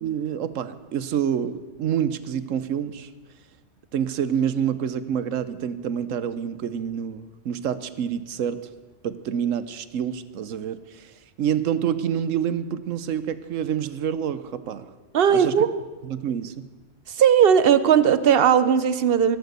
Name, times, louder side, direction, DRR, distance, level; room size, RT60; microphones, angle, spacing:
voice 1, 0.0-3.1 3.9-8.6 9.0-11.1 11.4-14.9 15.3-15.5 16.0-16.6, right 8 dB, 80° right, 14 dB, 1.1 m, -27 dB
voice 2, 15.1-15.8 17.2-19.4, right 8 dB, 55° right, 14 dB, 0.8 m, -17 dB
18.0 x 6.8 x 8.0 m, 1.2 s
omnidirectional pair, 1.3 m